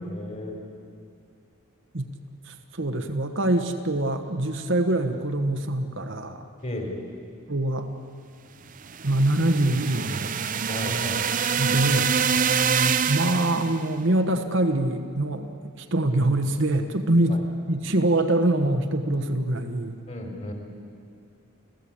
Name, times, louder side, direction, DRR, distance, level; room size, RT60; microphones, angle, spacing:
voice 1, 0.1-0.5 6.6-7.0 10.7-11.2 17.3-17.4 20.1-20.5, left 1 dB, 30° left, 2 dB, 3.5 m, -34 dB
voice 2, 2.5-6.4 7.5-7.9 9.0-10.3 11.6-12.1 13.1-15.5 15.8-17.4 17.7-20.0, right 1 dB, 55° right, 5 dB, 1.3 m, -24 dB
sound 1, 8.8-13.8, right 6 dB, 35° right, 0.6 m, -25 dB
30.0 x 15.5 x 8.7 m, 2.3 s
head